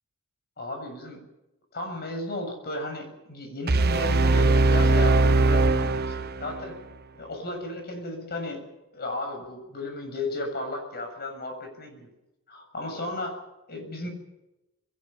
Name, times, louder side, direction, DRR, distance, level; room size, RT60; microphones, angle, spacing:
voice 1, 0.6-1.2 1.7-6.7 7.1-8.6 8.9-12.1 12.5-13.4 13.7-14.1, left 2 dB, 45° left, 4 dB, 7.2 m, -34 dB
sound 1, 3.7-6.7, right 2 dB, 45° right, 1.1 m, -21 dB
21.0 x 18.0 x 9.0 m, 0.95 s
head